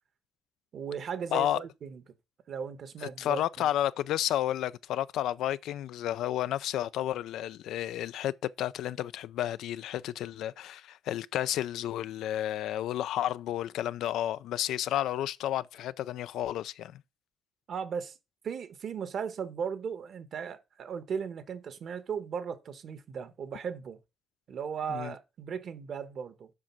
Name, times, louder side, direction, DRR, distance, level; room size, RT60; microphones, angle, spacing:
voice 1, 0.7-2.0 2.5-3.7 17.7-18.2 18.4-24.0 24.5-26.5, right 7 dB, 60° right, 1.3 m, -37 dB
voice 2, 1.3-1.6 3.2-17.0 24.9-25.1, left 12 dB, 85° left, 0.4 m, -31 dB
7.5 x 5.4 x 5.9 m
cardioid pair, 90°, 0 cm